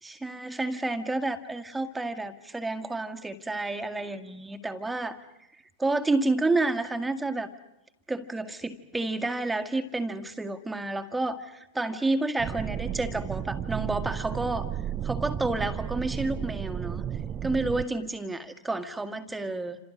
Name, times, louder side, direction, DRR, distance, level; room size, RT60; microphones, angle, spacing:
voice 1, 0.0-5.2 5.8-7.5 8.1-14.7 15.0-17.0 17.4-19.8, right 2 dB, 10° right, 8 dB, 2.0 m, -30 dB
sound 1, 12.4-17.8, right 9 dB, 30° right, 0.9 m, -33 dB
29.0 x 27.0 x 6.5 m, 0.85 s
figure-of-eight pair, 90°, 0 cm